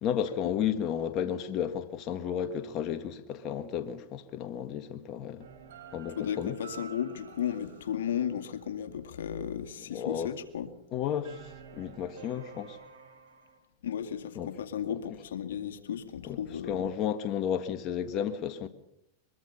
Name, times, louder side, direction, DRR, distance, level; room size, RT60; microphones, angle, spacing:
voice 1, 0.0-5.5 5.9-6.6 9.9-10.3 10.9-12.8 14.3-14.5 14.9-15.0 16.2-16.4 16.6-18.7, left 9 dB, 45° left, 1.6 m, -33 dB
sound 1, 5.4-9.0 11.2-13.6, right 6 dB, 80° right, 5.5 m, -50 dB
voice 2, 6.2-10.7 13.8-16.9, left 9 dB, 85° left, 2.1 m, -34 dB
23.0 x 23.0 x 5.7 m
hypercardioid pair, 120°, 0 cm